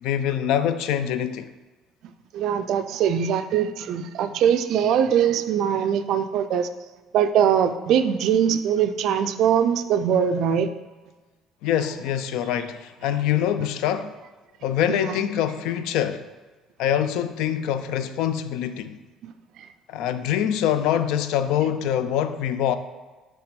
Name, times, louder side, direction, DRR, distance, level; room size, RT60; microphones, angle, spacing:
voice 1, 0.0-1.5 11.6-14.1 14.6-16.2 16.8-19.0 19.9-22.8, left 10 dB, 70° left, 0.3 m, -24 dB
voice 2, 2.3-6.7 7.1-10.7 14.9-15.2 19.2-19.3 19.6-19.7, right 8 dB, 55° right, 0.3 m, -22 dB
6.0 x 3.3 x 5.1 m
cardioid pair, 180°, 0 cm